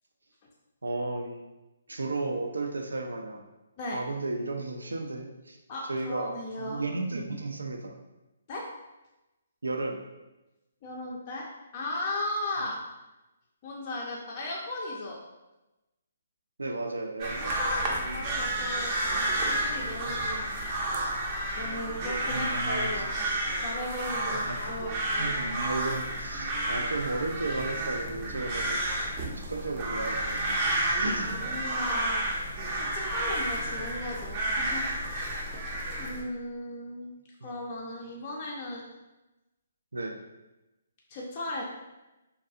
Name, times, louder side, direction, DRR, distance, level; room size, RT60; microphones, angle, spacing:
voice 1, 0.8-1.4 1.9-3.5 3.9-5.6 5.9-8.0 9.6-10.0 12.6-12.7 16.6-17.6 22.3-23.1 24.5-24.6 25.2-28.8 29.4-30.6 31.0-31.4 39.9-40.2, right 2 dB, 85° right, 3 dB, 0.3 m, -34 dB
voice 2, 5.7-6.8 8.5-8.7 10.8-12.8 13.6-15.2 17.4-20.9 21.5-23.1 23.6-25.6 31.2-32.1 32.7-35.3 36.0-37.1 37.4-38.8 41.1-41.6, left 1 dB, 35° left, -3 dB, 0.4 m, -36 dB
sound 1, 17.2-36.2, right 1 dB, 30° right, 0.5 m, -31 dB
2.5 x 2.3 x 2.6 m, 1.0 s
figure-of-eight pair, 140°, 0 cm